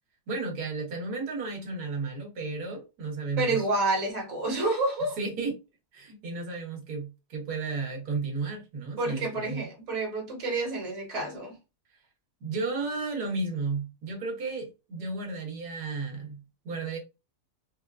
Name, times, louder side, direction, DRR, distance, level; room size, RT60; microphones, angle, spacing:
voice 1, 0.3-3.6 5.2-5.5 5.9-9.7 12.4-17.0, right 3 dB, 90° right, 1.6 m, -33 dB
voice 2, 3.4-5.2 9.0-11.6, right 2 dB, 30° right, 1.1 m, -29 dB
3.9 x 2.3 x 2.3 m
omnidirectional pair, 1.6 m